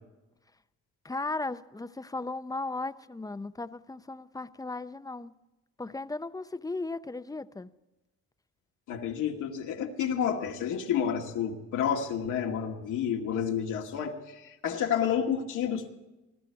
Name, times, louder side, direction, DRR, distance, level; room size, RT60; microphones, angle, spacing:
voice 1, 1.0-5.4 5.8-7.7, left 3 dB, 10° left, 12 dB, 0.7 m, -36 dB
voice 2, 8.9-15.9, left 8 dB, 85° left, 1 dB, 2.1 m, -30 dB
21.0 x 12.5 x 4.7 m, 1.0 s
cardioid pair, 90°, 30 cm